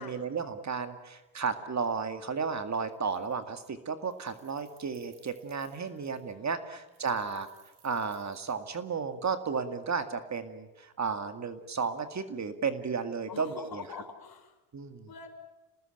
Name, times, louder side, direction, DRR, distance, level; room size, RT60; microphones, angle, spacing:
voice 1, 0.0-7.5 7.8-13.8 14.7-15.1, right 5 dB, 35° right, 9 dB, 2.1 m, -33 dB
Keys jangling, 2.5-2.6 2.9-3.6 3.9-6.3 6.9-9.1, right 7 dB, 85° right, 6.9 m, -64 dB
voice 2, 5.9-6.5 13.3-14.6 15.1-15.3, left 6 dB, 45° left, 7 dB, 4.6 m, -45 dB
27.5 x 19.0 x 9.0 m, 1.1 s
supercardioid pair, 80°, 48 cm